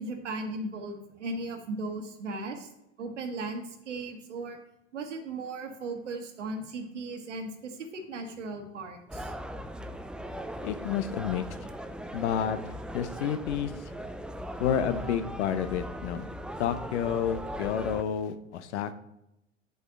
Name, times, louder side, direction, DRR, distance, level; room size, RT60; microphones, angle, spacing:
voice 1, 0.0-2.7 3.0-4.6 4.9-9.3, right 2 dB, 75° right, 6 dB, 1.5 m, -37 dB
sound 1, 9.1-18.0, equal, 5° right, 0.4 m, -39 dB
voice 2, 10.6-11.4 12.1-13.7 14.6-16.3 16.6-18.9, left 9 dB, 65° left, 11 dB, 0.8 m, -30 dB
8.1 x 8.0 x 3.8 m, 0.85 s
figure-of-eight pair, 75°, 36 cm